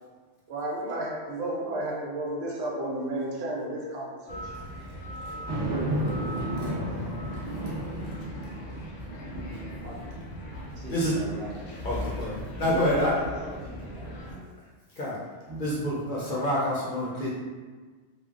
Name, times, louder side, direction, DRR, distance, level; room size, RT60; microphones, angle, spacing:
voice 1, 0.5-4.6 5.7-6.3, right 1 dB, 85° right, -3 dB, 1.0 m, -33 dB
sound 1, 4.3-14.3, equal, 80° left, 0.9 m, -39 dB
sound 2, 5.4-11.0 11.5-11.6 15.5-16.6, right 1 dB, 30° right, 0.5 m, -34 dB
voice 2, 10.7-12.1 12.6-14.5, right 2 dB, 65° right, -4 dB, 0.7 m, -39 dB
voice 3, 11.8-13.1 15.0-15.2 15.6-17.3, left 1 dB, 55° left, -6 dB, 0.6 m, -27 dB
3.2 x 2.1 x 2.4 m, 1.4 s
omnidirectional pair, 1.2 m